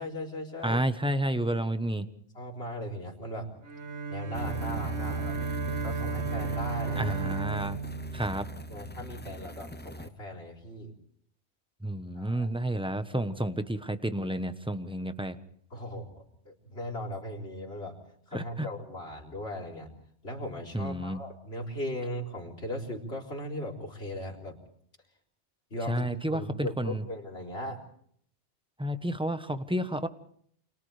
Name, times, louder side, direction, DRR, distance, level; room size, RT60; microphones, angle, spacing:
voice 1, 0.0-0.8 2.3-3.5 4.1-5.4 5.8-7.2 8.7-10.9 12.1-12.5 15.7-18.0 18.3-19.9 20.2-24.5 25.7-27.8, equal, 60° left, -1 dB, 4.3 m, -38 dB
voice 2, 0.6-2.1 6.9-7.8 8.1-8.5 11.8-15.4 18.3-18.7 20.7-21.2 25.9-27.0 28.8-30.1, right 1 dB, 5° right, 10 dB, 1.0 m, -30 dB
Bowed string instrument, 3.6-9.1, right 5 dB, 75° right, 1.7 m, -35 dB
sound 1, 4.3-10.1, equal, 10° left, 0.6 m, -39 dB
29.5 x 26.5 x 3.3 m, 0.63 s
omnidirectional pair, 1.2 m